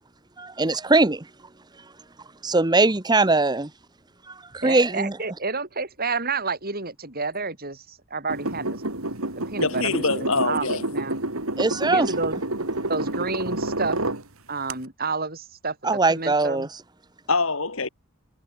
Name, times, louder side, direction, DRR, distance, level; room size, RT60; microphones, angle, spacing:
voice 1, 0.4-1.3 2.4-3.7 4.3-4.4 4.6-5.2 11.6-12.1 15.8-16.7, right 3 dB, 20° right, 0.9 m, -21 dB
voice 2, 4.6-8.8 9.4-11.2 11.9-12.4 12.7-14.0 14.5-15.8 16.1-16.7, right 4 dB, 45° right, 6.4 m, -30 dB
sound 1, 8.3-14.2 14.7-14.8, right 2 dB, 70° right, 4.1 m, -29 dB
voice 3, 9.6-10.9 17.3-17.9, left 3 dB, 65° left, 3.0 m, -24 dB
head